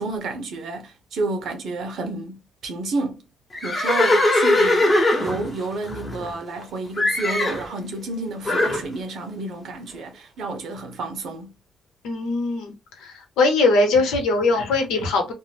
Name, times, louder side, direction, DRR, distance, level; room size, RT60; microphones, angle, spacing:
voice 1, 0.0-3.3 3.6-11.5, right 3 dB, 70° right, 0.9 m, -30 dB
Livestock farm animals working animals, 3.5-6.6 7.0-7.7 8.4-8.8, left 1 dB, 25° left, 0.9 m, -20 dB
voice 2, 12.0-12.7 13.0-15.3, left 3 dB, 90° left, 0.9 m, -21 dB
2.6 x 2.0 x 3.3 m
cardioid pair, 90°, 0 cm